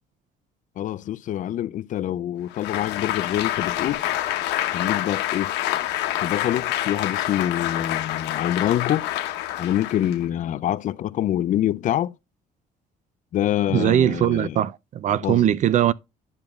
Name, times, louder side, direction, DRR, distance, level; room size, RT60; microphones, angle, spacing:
voice 1, 0.8-4.1 4.7-5.5 6.2-9.1 9.6-12.1 13.3-14.6 15.2-15.5, left 12 dB, 50° left, 0.4 m, -25 dB
Applause, 2.5-10.3, left 13 dB, 85° left, 0.9 m, -27 dB
voice 2, 13.7-15.9, right 11 dB, 45° right, 0.4 m, -20 dB
10.5 x 5.0 x 2.3 m
cardioid pair, 110°, 17 cm